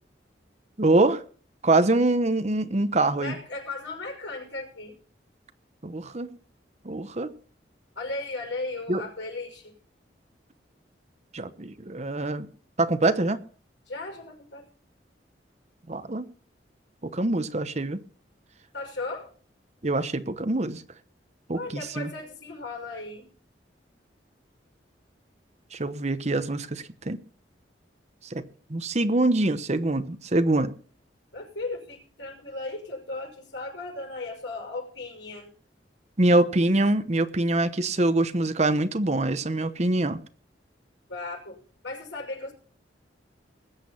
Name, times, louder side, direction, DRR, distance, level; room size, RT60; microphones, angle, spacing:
voice 1, 0.8-1.2 1.6-3.3 5.8-6.3 6.8-7.3 8.9-9.0 11.3-12.5 12.8-13.4 15.9-16.3 17.0-18.0 19.8-20.8 21.5-22.1 25.7-27.2 28.2-30.7 36.2-40.2, right 2 dB, 40° right, 1.0 m, -24 dB
voice 2, 3.2-5.0 8.0-9.7 13.9-14.7 18.7-19.3 21.5-23.3 31.3-35.5 41.1-41.6 41.8-42.5, left 2 dB, 85° left, 6.1 m, -36 dB
20.5 x 8.4 x 5.7 m
head